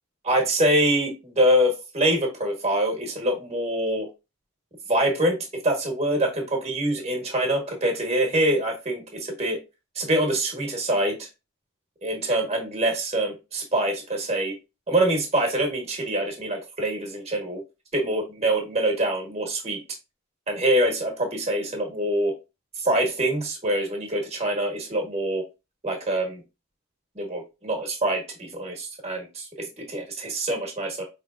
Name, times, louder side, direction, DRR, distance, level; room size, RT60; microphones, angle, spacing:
voice 1, 0.2-4.1 4.9-9.6 9.9-11.3 12.0-14.6 14.9-17.6 17.9-19.8 20.5-22.3 22.8-25.4 25.8-26.4 27.1-31.0, right 1 dB, 30° right, 2 dB, 1.3 m, -25 dB
5.1 x 3.3 x 2.5 m, 0.26 s
head